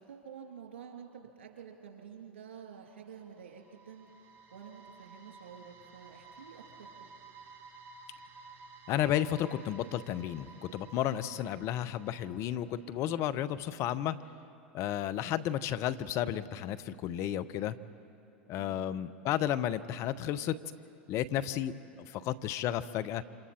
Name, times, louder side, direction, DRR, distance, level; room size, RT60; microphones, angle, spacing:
voice 1, 0.1-4.1 4.5-6.9 18.6-18.9, right 7 dB, 80° right, 2 dB, 3.1 m, -49 dB
sound 1, 2.9-13.0, right 3 dB, 35° right, 2.4 m, -54 dB
voice 2, 8.9-14.2 14.7-17.7 18.5-20.6 21.1-23.2, left 11 dB, 50° left, 14 dB, 0.9 m, -32 dB
28.5 x 26.0 x 4.4 m, 2.6 s
hypercardioid pair, 90°, 6 cm